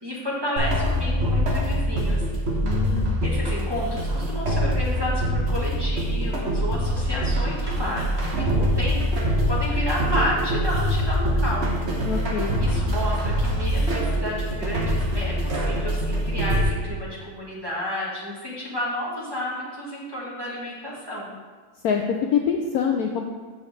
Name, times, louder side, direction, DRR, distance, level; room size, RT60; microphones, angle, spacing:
voice 1, 0.0-2.2 3.2-11.7 12.6-21.4, equal, 15° right, -6 dB, 1.6 m, -31 dB
sound 1, 0.6-16.6, equal, 45° right, 1.2 m, -24 dB
voice 2, 2.6-3.2 12.0-12.5 21.8-23.2, left 7 dB, 70° left, 2 dB, 0.9 m, -25 dB
7.2 x 6.4 x 4.1 m, 1.5 s
omnidirectional pair, 1.9 m